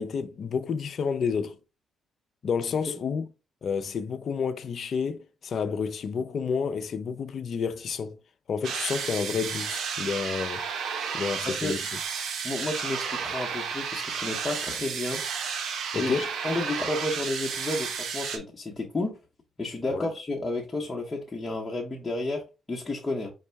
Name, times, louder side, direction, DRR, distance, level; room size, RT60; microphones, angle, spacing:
voice 1, 0.0-1.6 2.4-3.3 3.6-8.2 8.5-10.7 11.1-11.8 15.9-16.3 19.9-20.1, left 6 dB, 55° left, 0.4 m, -30 dB
sound 1, 8.6-18.4, right 6 dB, 70° right, 0.7 m, -32 dB
voice 2, 11.4-11.7 12.4-15.2 15.9-19.1 19.6-22.4 22.7-23.3, left 2 dB, 20° left, 0.8 m, -31 dB
5.2 x 2.1 x 3.3 m
cardioid pair, 90°, 0 cm